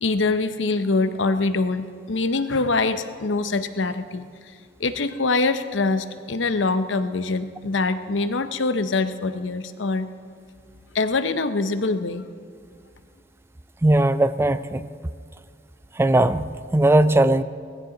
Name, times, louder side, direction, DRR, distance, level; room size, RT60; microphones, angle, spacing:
voice 1, 0.0-4.3 4.8-10.1 10.9-12.3, left 3 dB, 90° left, 10 dB, 0.8 m, -24 dB
voice 2, 13.8-14.9 15.9-17.4, right 1 dB, 15° right, 14 dB, 0.4 m, -19 dB
19.5 x 15.5 x 3.9 m, 2.1 s
head